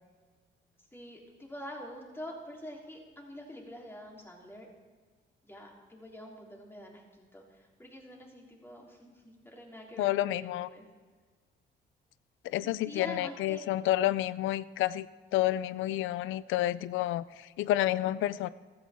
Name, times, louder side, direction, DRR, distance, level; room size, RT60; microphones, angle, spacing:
voice 1, 0.9-4.7 5.4-10.8 12.6-13.6, equal, 10° left, -1 dB, 3.4 m, -46 dB
voice 2, 10.0-10.7 12.4-15.1 15.3-18.5, left 14 dB, 90° left, 18 dB, 0.5 m, -29 dB
15.0 x 13.5 x 3.6 m, 1.5 s
cardioid pair, 90°, 20 cm